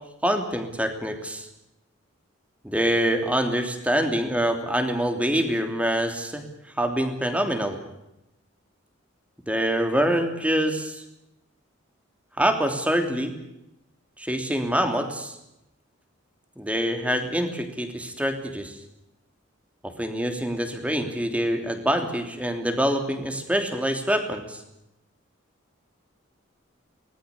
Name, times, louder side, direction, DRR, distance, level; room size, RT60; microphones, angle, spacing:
voice 1, 0.2-1.5 2.6-6.4 6.8-7.8 9.5-11.0 12.4-13.3 14.2-15.4 16.6-18.8 19.8-24.6, equal, 5° right, 6 dB, 3.1 m, -25 dB
24.0 x 20.0 x 8.4 m, 0.87 s
head